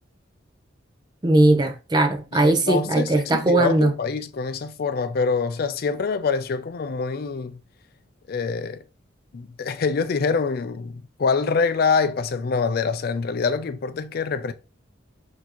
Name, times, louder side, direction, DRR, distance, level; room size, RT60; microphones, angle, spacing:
voice 1, 1.2-3.9, right 2 dB, 20° right, 0.6 m, -19 dB
voice 2, 2.3-7.6 8.3-8.8 9.3-14.5, left 5 dB, 50° left, 0.4 m, -25 dB
4.2 x 2.8 x 2.8 m
head